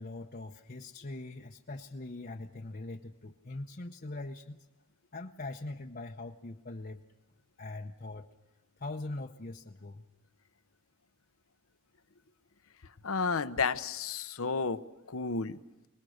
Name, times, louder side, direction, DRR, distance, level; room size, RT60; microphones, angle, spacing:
voice 1, 0.0-4.6 5.1-7.0 7.6-8.3 8.8-10.0, left 2 dB, 45° left, 1 dB, 0.9 m, -42 dB
voice 2, 13.0-14.8 15.1-15.6, left 4 dB, 75° left, 12 dB, 0.9 m, -31 dB
27.5 x 20.5 x 6.5 m, 1.0 s
head